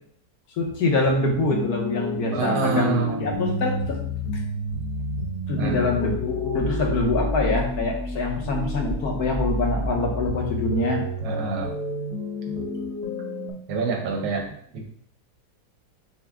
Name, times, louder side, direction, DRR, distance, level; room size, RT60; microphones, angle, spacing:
voice 1, 0.6-4.0 5.5-11.0, left 2 dB, 65° left, 0 dB, 1.3 m, -25 dB
sound 1, 1.1-13.5, left 1 dB, 30° right, 0.7 m, -29 dB
voice 2, 2.3-3.3 5.5-5.9 11.2-11.7 13.7-14.5, right 4 dB, 80° right, 1 dB, 1.6 m, -26 dB
5.8 x 2.1 x 3.5 m, 0.63 s
omnidirectional pair, 1.9 m